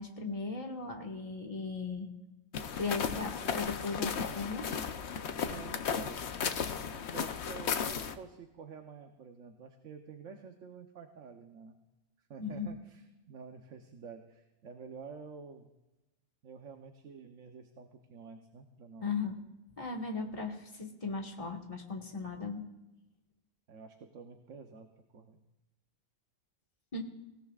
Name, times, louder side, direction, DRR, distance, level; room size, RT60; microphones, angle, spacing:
voice 1, 0.0-2.1 2.8-4.7 12.4-12.7 19.0-19.4 19.8-22.6 26.9-27.0, left 4 dB, 30° left, 1 dB, 1.8 m, -37 dB
sound 1, 2.5-8.1, left 7 dB, 65° left, 1.0 m, -35 dB
voice 2, 5.5-6.2 6.9-11.8 12.3-15.7 16.4-19.1 23.7-24.9 25.1-25.4, right 5 dB, 80° right, 4 dB, 1.3 m, -49 dB
26.0 x 17.0 x 2.4 m, 0.99 s
omnidirectional pair, 1.3 m